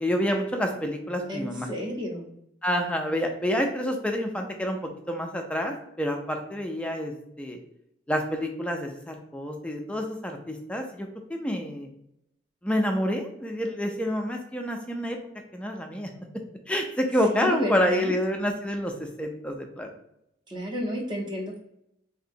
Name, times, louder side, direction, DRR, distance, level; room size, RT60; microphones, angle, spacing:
voice 1, 0.0-1.7 2.6-4.8 5.1-7.6 8.1-11.9 12.6-15.2 15.5-16.1 16.7-19.9, equal, 5° left, 3 dB, 0.3 m, -28 dB
voice 2, 1.3-2.3 17.3-18.1 20.5-21.6, equal, 25° right, 0 dB, 0.7 m, -32 dB
3.9 x 2.7 x 2.5 m, 0.78 s
head